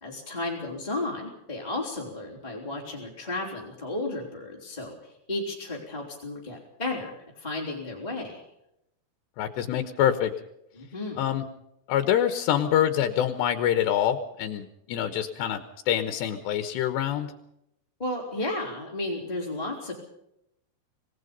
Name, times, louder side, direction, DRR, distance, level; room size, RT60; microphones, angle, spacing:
voice 1, 0.0-8.4 10.7-11.2 18.0-19.9, left 2 dB, 10° left, -2 dB, 3.7 m, -33 dB
voice 2, 9.4-10.3 11.2-11.4 11.9-17.3, left 10 dB, 80° left, 8 dB, 3.3 m, -25 dB
26.5 x 18.5 x 5.4 m, 0.81 s
omnidirectional pair, 5.0 m